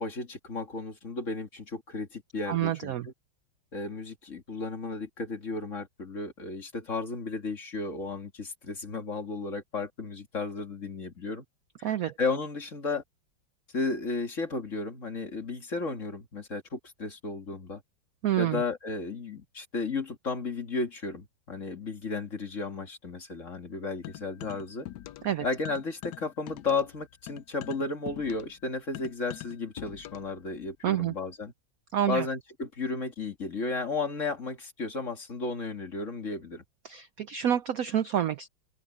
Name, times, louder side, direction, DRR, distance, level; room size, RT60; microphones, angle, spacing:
voice 1, 0.0-2.9 3.7-11.4 11.8-11.9 12.2-13.0 13.7-17.8 18.4-24.9 25.4-31.5 32.1-36.6, left 3 dB, 40° left, 2.5 m, -34 dB
voice 2, 2.5-3.1 11.8-12.1 18.2-18.6 25.2-25.5 30.8-31.1 31.9-32.3 36.8-38.5, right 10 dB, 65° right, 0.8 m, -28 dB
sound 1, 24.0-25.4 25.6-30.4, left 14 dB, 70° left, 1.1 m, -44 dB
omnidirectional pair, 2.2 m